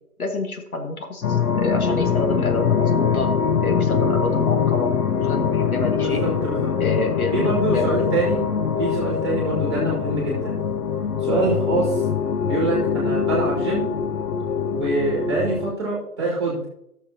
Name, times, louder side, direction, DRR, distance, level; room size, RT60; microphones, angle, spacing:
voice 1, 0.2-4.9 5.2-6.3 6.8-8.0, left 2 dB, 65° left, 4 dB, 1.6 m, -28 dB
sound 1, 1.2-15.7, left 7 dB, 90° left, 0.9 m, -23 dB
voice 2, 6.0-6.7 7.3-8.4 8.8-10.6 11.2-12.0 12.4-13.9 14.7-16.7, right 2 dB, 20° right, -3 dB, 2.1 m, -25 dB
14.5 x 6.6 x 2.8 m, 0.78 s
hypercardioid pair, 180°, 45 cm